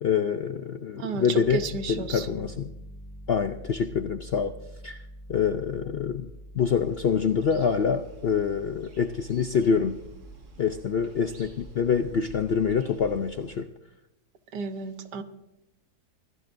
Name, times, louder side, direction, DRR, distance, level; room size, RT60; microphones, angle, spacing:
voice 1, 0.0-1.6 1.9-2.7 3.3-4.5 4.8-5.0 5.3-10.0 10.6-13.7, left 6 dB, 65° left, 8 dB, 0.6 m, -26 dB
voice 2, 0.9-2.5 14.5-15.2, right 5 dB, 85° right, 9 dB, 1.6 m, -33 dB
Piano, 1.4-12.7, equal, 10° left, 1.6 m, -46 dB
sound 1, 6.8-13.6, right 3 dB, 70° right, 2.7 m, -50 dB
25.0 x 16.5 x 2.6 m, 0.90 s
omnidirectional pair, 1.7 m